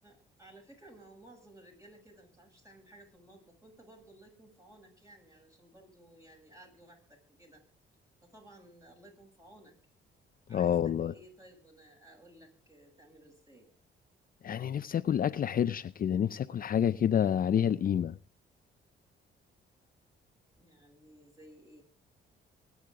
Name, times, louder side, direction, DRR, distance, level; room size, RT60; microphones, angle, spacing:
voice 1, 0.0-7.6 8.2-9.7 10.5-13.7 20.6-21.8, right 1 dB, 15° right, 7.8 m, -56 dB
voice 2, 10.5-11.1 14.4-18.2, left 9 dB, 45° left, 0.6 m, -28 dB
24.0 x 9.5 x 3.7 m
cardioid pair, 90°, 20 cm